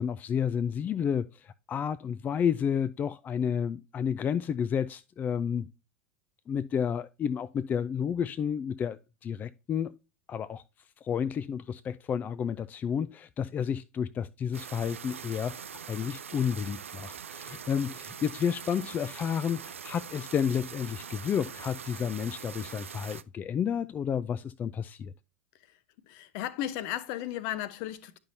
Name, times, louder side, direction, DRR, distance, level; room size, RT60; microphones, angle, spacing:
voice 1, 0.0-5.7 6.5-10.0 10.3-10.6 11.0-25.1, left 8 dB, 25° left, 0.3 m, -31 dB
sound 1, 14.5-23.2, right 7 dB, 80° right, 0.4 m, -43 dB
voice 2, 26.1-28.2, left 12 dB, 50° left, 0.7 m, -35 dB
10.0 x 5.4 x 2.6 m
figure-of-eight pair, 85°, 7 cm